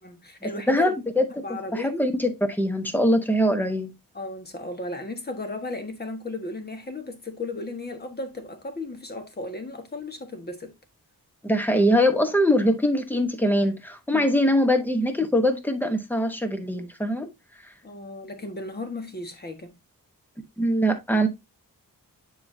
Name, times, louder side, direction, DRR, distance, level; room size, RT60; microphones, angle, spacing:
voice 1, 0.0-1.0 1.3-2.0 4.1-10.7 14.1-14.3 17.8-19.8, left 2 dB, 30° left, 1.4 m, -35 dB
voice 2, 0.7-1.2 1.7-3.9 11.4-17.3 20.6-21.3, equal, 5° left, 1.0 m, -22 dB
9.5 x 4.7 x 2.7 m
wide cardioid pair, 180°, 35 cm